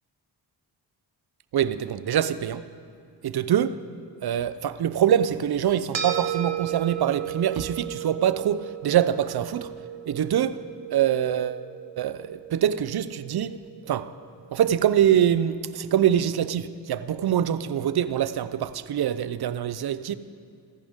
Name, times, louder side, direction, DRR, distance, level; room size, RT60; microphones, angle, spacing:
voice 1, 1.5-2.6 3.2-3.8 4.2-9.7 10.1-10.6 10.9-11.6 12.0-13.6 13.9-14.1 14.5-20.1, right 10 dB, 60° right, 0.7 m, -24 dB
sound 1, 5.9-14.5, right 10 dB, 85° right, 1.6 m, -36 dB
26.0 x 10.5 x 3.7 m
cardioid pair, 75°, 43 cm